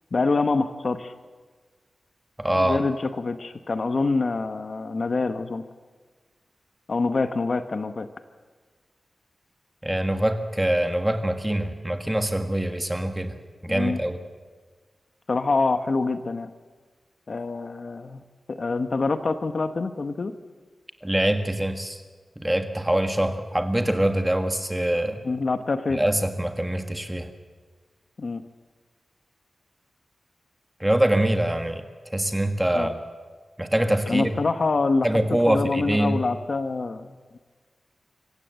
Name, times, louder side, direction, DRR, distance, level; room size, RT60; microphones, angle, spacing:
voice 1, 0.1-1.1 2.5-5.7 6.9-8.1 13.7-14.0 15.3-16.5 17.3-18.2 18.5-20.3 25.2-26.0 28.2-28.4 32.7-32.9 34.1-35.1 35.5-37.4, left 3 dB, 50° left, 9 dB, 1.0 m, -25 dB
voice 2, 2.4-2.8 9.8-13.3 13.6-14.2 21.0-22.0 22.4-25.2 25.9-27.3 30.8-31.8 32.1-32.9 33.6-34.3 35.0-36.2, right 1 dB, 10° right, 6 dB, 1.7 m, -24 dB
25.5 x 15.5 x 8.0 m, 1.5 s
wide cardioid pair, 145°, 0 cm